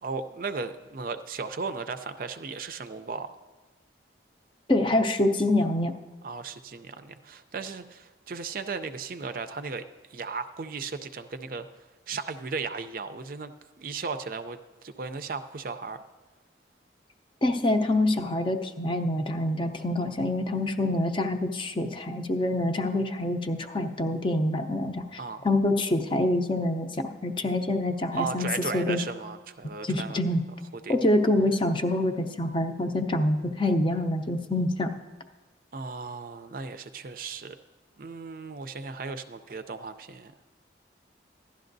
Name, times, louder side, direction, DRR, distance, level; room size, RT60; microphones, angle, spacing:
voice 1, 0.0-3.3 6.2-9.8 10.1-11.7 12.1-13.5 13.8-16.0 25.2-25.5 28.1-30.2 30.8-31.0 35.7-37.6 38.0-40.3, right 4 dB, 50° right, 9 dB, 0.4 m, -36 dB
voice 2, 4.7-5.9 17.4-25.2 25.4-28.5 28.7-29.0 29.8-30.4 30.9-34.9, left 1 dB, 30° left, 6 dB, 0.6 m, -26 dB
15.5 x 11.5 x 2.6 m, 1.2 s
head